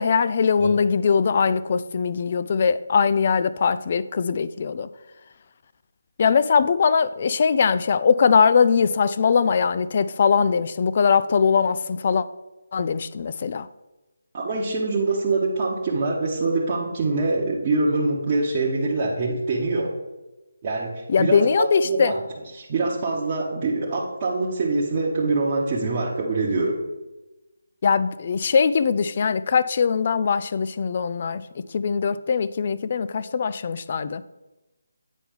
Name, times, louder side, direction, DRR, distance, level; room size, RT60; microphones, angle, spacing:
voice 1, 0.0-4.9 6.2-12.3 12.7-13.7 21.1-22.1 27.8-31.4 31.7-34.2, left 6 dB, 40° left, 0.3 m, -21 dB
voice 2, 14.3-19.9 20.6-22.2 22.5-26.8, right 3 dB, 30° right, 1.0 m, -24 dB
8.9 x 4.5 x 3.6 m
figure-of-eight pair, 160°, 0 cm